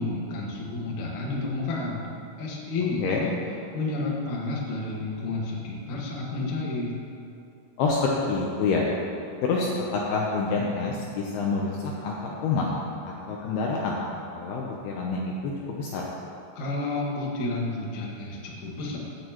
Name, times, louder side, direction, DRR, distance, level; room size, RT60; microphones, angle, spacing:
voice 1, 0.0-2.0 2.4-3.3 3.7-7.0 16.6-19.0, left 2 dB, 55° left, -4 dB, 2.3 m, -30 dB
voice 2, 7.8-8.9 9.4-12.7 13.1-14.0 14.3-16.0, left 4 dB, 80° left, -2 dB, 2.3 m, -27 dB
16.0 x 8.9 x 3.0 m, 2.7 s
omnidirectional pair, 5.5 m